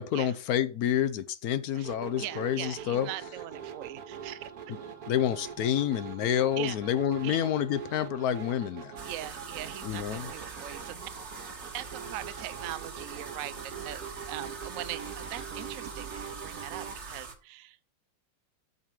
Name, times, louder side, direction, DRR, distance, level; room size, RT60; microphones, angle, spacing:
voice 1, 0.0-3.1 5.1-9.0 9.8-10.3, left 10 dB, 70° left, 0.9 m, -28 dB
voice 2, 1.7-4.5 6.6-6.8 7.2-7.4 9.0-11.1 11.7-13.5 13.8-16.1 16.4-17.8, right 14 dB, 75° right, 0.7 m, -41 dB
sound 1, 1.8-17.0, right 7 dB, 55° right, 1.4 m, -43 dB
sound 2, 9.0-17.3, right 4 dB, 40° right, 1.4 m, -43 dB
8.2 x 4.8 x 7.3 m
omnidirectional pair, 2.1 m